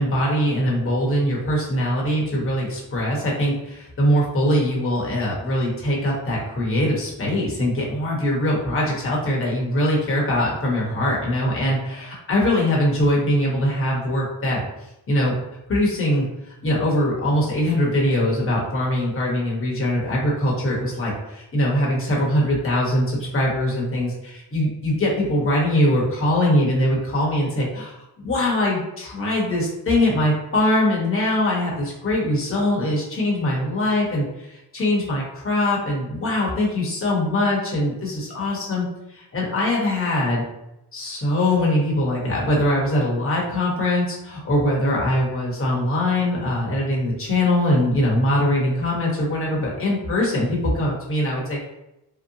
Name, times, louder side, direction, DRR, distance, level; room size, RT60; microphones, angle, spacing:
voice 1, 0.0-14.6 15.1-15.4 15.7-40.4 40.9-51.7, left 1 dB, 35° left, -4 dB, 1.0 m, -22 dB
2.8 x 2.1 x 2.7 m, 0.89 s
cardioid pair, 70°, 40 cm